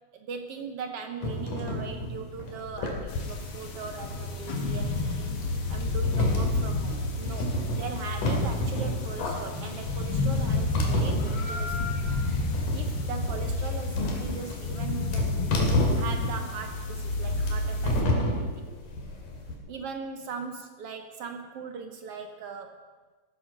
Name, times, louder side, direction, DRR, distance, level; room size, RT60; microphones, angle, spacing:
voice 1, 0.1-7.5 7.8-12.0 12.7-15.5 15.9-18.7 19.7-22.8, right 5 dB, 65° right, 5 dB, 1.5 m, -40 dB
sound 1, 1.2-19.5, left 1 dB, 70° left, 3.8 m, -31 dB
sound 2, 3.1-18.0, left 2 dB, 45° left, 1.9 m, -30 dB
15.5 x 10.0 x 6.6 m, 1.4 s
omnidirectional pair, 3.8 m